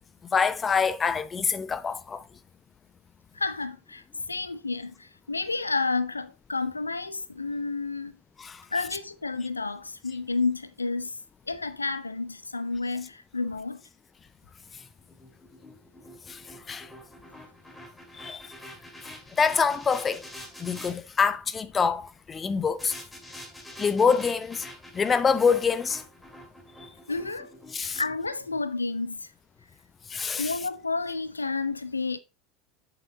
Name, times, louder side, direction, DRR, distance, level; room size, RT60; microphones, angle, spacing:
voice 1, 0.3-2.2 8.4-8.6 16.3-16.4 16.7-16.9 18.2-18.4 19.4-20.2 20.6-22.9 23.8-24.7 24.9-26.0 27.7-28.0 30.1-30.5, left 5 dB, 25° left, 0.7 m, -25 dB
voice 2, 3.3-8.1 8.7-11.2 11.5-13.8 27.1-29.3 30.4-32.2, left 3 dB, 85° left, 0.5 m, -31 dB
sound 1, 14.7-20.9 22.8-29.0, left 1 dB, 5° left, 2.3 m, -46 dB
8.2 x 7.1 x 2.7 m
figure-of-eight pair, 75°, 0 cm